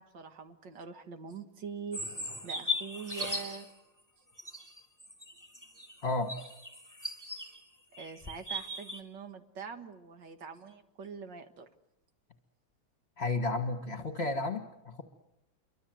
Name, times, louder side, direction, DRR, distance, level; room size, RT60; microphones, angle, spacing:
voice 1, 0.0-3.7 7.2-7.5 8.0-11.7, right 5 dB, 65° right, 8 dB, 2.2 m, -44 dB
sound 1, 1.9-3.7 4.4-7.6 7.9-9.0, left 1 dB, 10° right, 2.9 m, -38 dB
voice 2, 6.0-6.3 13.2-15.0, left 2 dB, 35° left, 6 dB, 1.8 m, -32 dB
27.5 x 24.0 x 7.8 m, 0.86 s
omnidirectional pair, 2.1 m